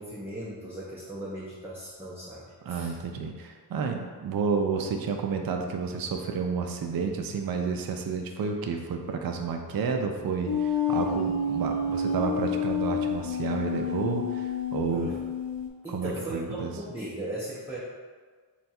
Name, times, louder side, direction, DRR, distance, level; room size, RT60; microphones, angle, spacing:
voice 1, 0.0-2.9 14.9-15.2 15.8-17.8, right 1 dB, 5° right, -7 dB, 0.5 m, -37 dB
voice 2, 2.7-15.1 15.9-16.7, right 5 dB, 55° right, 3 dB, 0.4 m, -30 dB
sound 1, 10.5-15.7, left 4 dB, 65° left, 0.6 m, -29 dB
3.3 x 2.3 x 4.2 m, 1.5 s
wide cardioid pair, 95°, 44 cm